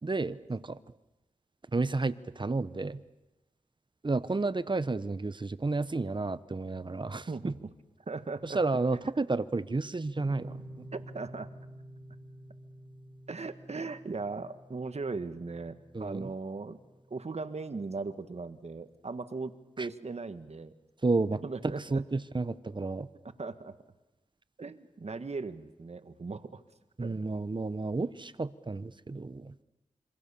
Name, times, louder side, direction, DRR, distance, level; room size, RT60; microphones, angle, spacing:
voice 1, 0.0-0.8 1.7-3.0 4.0-7.5 8.4-10.9 15.9-16.3 19.8-19.9 21.0-21.4 21.9-23.1 27.0-29.5, right 3 dB, 40° right, 15 dB, 1.0 m, -31 dB
voice 2, 7.3-7.7 8.1-8.6 10.9-11.5 13.3-16.8 17.1-20.7 21.4-22.0 23.4-23.7 24.6-26.6 27.0-27.2, right 4 dB, 60° right, 10 dB, 1.6 m, -38 dB
sound 1, 10.1-17.3, right 1 dB, 10° right, 7.7 m, -49 dB
27.0 x 24.5 x 7.0 m, 1.0 s
cardioid pair, 50°, 12 cm